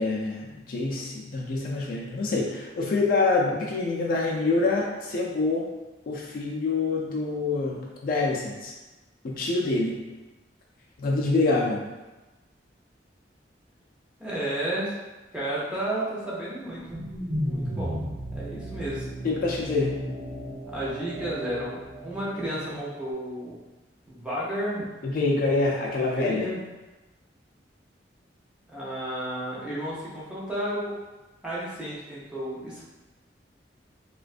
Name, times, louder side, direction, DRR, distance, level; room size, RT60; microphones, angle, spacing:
voice 1, 0.0-5.7 6.1-8.7 9.2-10.0 11.0-11.8 19.2-20.0 25.0-26.5, left 3 dB, 50° left, -2 dB, 0.3 m, -26 dB
voice 2, 14.2-14.9 15.3-17.0 17.5-18.0 18.3-19.1 20.7-23.6 24.1-24.9 26.1-26.6 28.7-31.0 31.4-32.8, right 1 dB, 5° right, -8 dB, 0.5 m, -32 dB
sound 1, 16.6-22.9, equal, 80° right, 0.9 m, -35 dB
2.4 x 2.2 x 2.4 m, 1.1 s
head